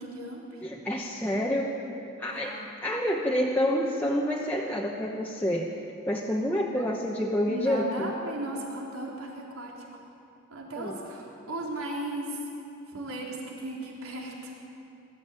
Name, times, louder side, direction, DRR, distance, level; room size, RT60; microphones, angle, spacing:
voice 1, 0.0-0.6 2.3-2.6 6.7-6.9 7.5-10.0 10.5-12.4 12.9-14.5, right 1 dB, 80° right, -2 dB, 4.0 m, -36 dB
voice 2, 0.6-1.8 2.2-5.8 6.1-8.1 10.8-11.0, equal, 10° left, -3 dB, 1.1 m, -28 dB
21.0 x 14.0 x 9.3 m, 2.8 s
head